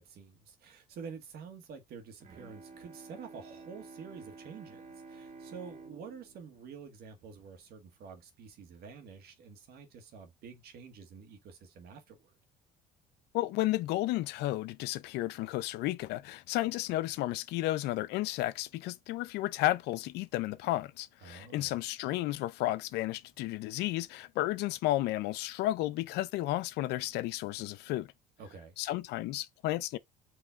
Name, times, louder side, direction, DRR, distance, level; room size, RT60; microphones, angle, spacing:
voice 1, 0.0-12.3 21.2-21.8 28.4-28.7, right 6 dB, 65° right, 1.6 m, -48 dB
Bowed string instrument, 2.2-7.8, right 4 dB, 40° right, 1.5 m, -52 dB
voice 2, 13.3-28.1 28.8-30.0, left 16 dB, 70° left, 0.4 m, -32 dB
4.8 x 3.1 x 3.5 m
supercardioid pair, 90°, 18 cm